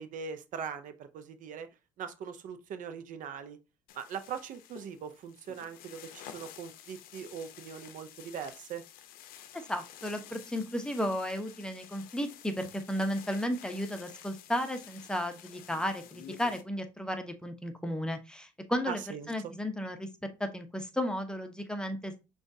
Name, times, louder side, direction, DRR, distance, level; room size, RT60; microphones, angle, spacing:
voice 1, 0.0-1.7 2.0-3.6 4.0-8.8 18.9-19.3, right 7 dB, 60° right, 0.6 m, -41 dB
sound 1, 3.9-16.6, left 11 dB, 75° left, 0.6 m, -51 dB
voice 2, 9.5-19.0 19.3-20.1 20.4-22.2, equal, 5° left, 0.7 m, -34 dB
6.0 x 2.4 x 2.6 m
supercardioid pair, 90°, 15 cm